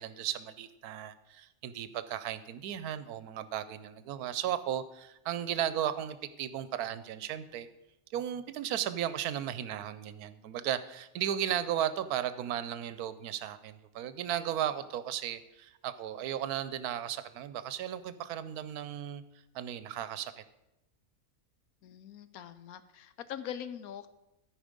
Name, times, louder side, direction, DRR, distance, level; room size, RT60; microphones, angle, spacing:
voice 1, 0.0-7.7 8.1-19.2 19.5-20.4, right 10 dB, 85° right, 14 dB, 1.1 m, -35 dB
voice 2, 21.8-24.1, left 9 dB, 75° left, 12 dB, 1.1 m, -42 dB
13.5 x 5.1 x 5.1 m, 0.93 s
omnidirectional pair, 1.6 m